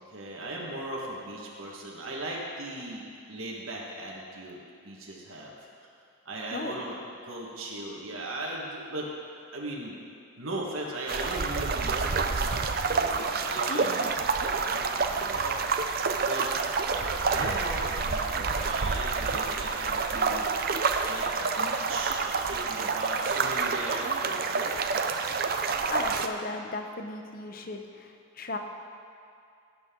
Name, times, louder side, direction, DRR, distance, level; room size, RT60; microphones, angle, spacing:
voice 1, 0.0-4.6 4.8-5.6 6.2-9.1 9.5-9.9 10.4-14.1 14.4-15.6 16.2-16.5 16.8-20.5 21.0-25.4, right 1 dB, 80° right, -3 dB, 1.5 m, -38 dB
voice 2, 6.5-6.8 13.7-14.1 25.9-28.6, left 3 dB, 45° left, 5 dB, 0.8 m, -36 dB
sound 1, 11.1-26.3, right 4 dB, 45° right, 0.5 m, -28 dB
16.0 x 7.9 x 3.8 m, 2.4 s
head